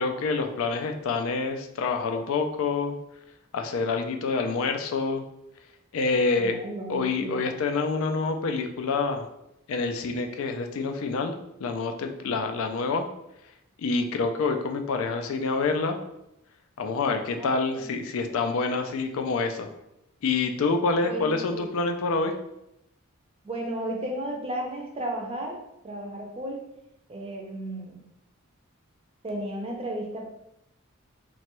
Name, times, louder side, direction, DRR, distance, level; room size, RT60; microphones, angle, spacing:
voice 1, 0.0-3.0 3.5-5.2 5.9-6.6 6.9-9.2 9.7-11.3 11.6-13.1 13.8-16.0 16.8-19.7 20.2-22.3, left 4 dB, 70° left, 5 dB, 0.3 m, -27 dB
voice 2, 6.4-7.5 17.4-17.9 21.0-21.8 23.4-25.6 25.8-26.6 27.1-28.0 29.2-30.3, right 1 dB, 25° right, 0 dB, 0.5 m, -34 dB
2.9 x 2.2 x 3.0 m, 0.83 s
head